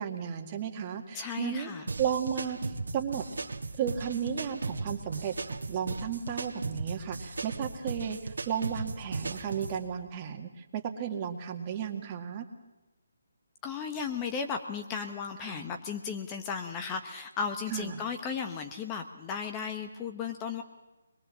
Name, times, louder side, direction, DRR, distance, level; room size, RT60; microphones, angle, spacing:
voice 1, 0.0-1.7 2.0-3.2 3.8-5.4 5.7-12.5 15.4-15.7 17.7-18.0, right 8 dB, 25° right, 4 dB, 1.9 m, -34 dB
voice 2, 1.1-1.8 13.6-20.6, left 6 dB, 20° left, 6 dB, 1.0 m, -35 dB
sound 1, 1.9-9.8, right 3 dB, 70° right, 1.9 m, -37 dB
23.5 x 22.0 x 7.4 m, 1.1 s
figure-of-eight pair, 160°, 0 cm